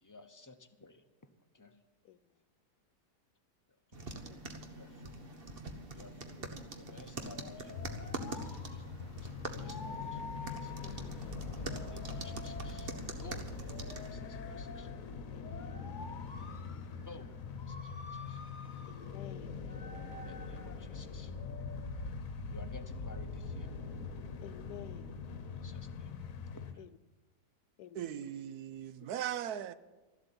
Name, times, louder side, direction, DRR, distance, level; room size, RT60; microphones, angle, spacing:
voice 1, 0.0-1.0 1.5-1.8 3.9-4.1 4.7-5.2 5.9-6.4 6.8-10.7 11.6-13.5 13.8-14.9 17.1-18.4 20.2-21.3 22.5-23.7 25.6-26.1 26.5-26.8, left 3 dB, 20° left, 0.6 m, -55 dB
voice 2, 2.0-2.4 4.3-4.4 6.4-6.5 10.8-11.4 15.3-16.0 18.8-19.6 24.4-25.2 26.8-27.0 27.8-28.2, left 11 dB, 90° left, 1.2 m, -53 dB
sound 1, 3.9-14.1, right 3 dB, 40° right, 1.2 m, -45 dB
sound 2, 4.1-22.2, left 4 dB, 35° left, 1.0 m, -51 dB
sound 3, 7.7-26.7, left 4 dB, 65° left, 1.3 m, -43 dB
voice 3, 27.9-29.7, right 10 dB, 85° right, 1.2 m, -38 dB
13.0 x 7.9 x 9.8 m
omnidirectional pair, 1.6 m